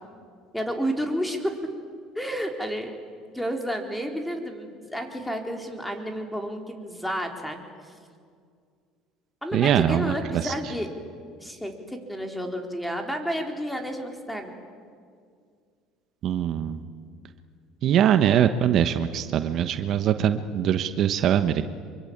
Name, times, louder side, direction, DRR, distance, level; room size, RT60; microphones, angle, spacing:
voice 1, 0.5-1.6 2.1-2.9 3.3-7.6 7.8-7.9 9.4-10.9 11.4-14.5, equal, 5° left, 4 dB, 4.1 m, -31 dB
voice 2, 9.5-10.5 16.2-16.8 17.8-21.6, right 9 dB, 55° right, 9 dB, 1.1 m, -22 dB
25.5 x 23.5 x 8.8 m, 2.1 s
supercardioid pair, 95°, 0 cm